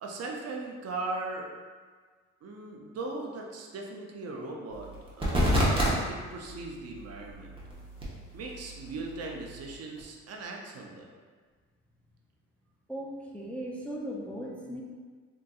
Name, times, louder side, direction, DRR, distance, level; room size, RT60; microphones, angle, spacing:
voice 1, 0.0-1.5 2.4-4.9 5.2-5.5 5.7-7.6 8.3-11.1, right 3 dB, 55° right, 0 dB, 0.5 m, -39 dB
sound 1, 4.7-5.9 6.3-10.0, equal, 20° right, 0.8 m, -31 dB
voice 2, 12.9-14.8, equal, 5° left, -3 dB, 0.4 m, -37 dB
3.7 x 2.5 x 2.3 m, 1.5 s
cardioid pair, 90°, 30 cm